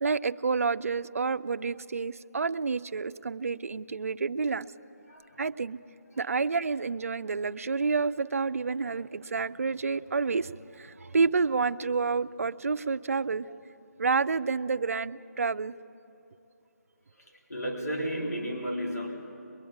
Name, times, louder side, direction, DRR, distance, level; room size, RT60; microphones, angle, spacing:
voice 1, 0.0-4.7 5.4-5.8 6.2-13.6 14.0-15.7, right 4 dB, 55° right, 12 dB, 0.5 m, -29 dB
voice 2, 5.1-5.5 17.2-19.1, equal, 70° left, 0 dB, 3.7 m, -33 dB
23.0 x 22.5 x 8.7 m, 2.8 s
figure-of-eight pair, 170°, 9 cm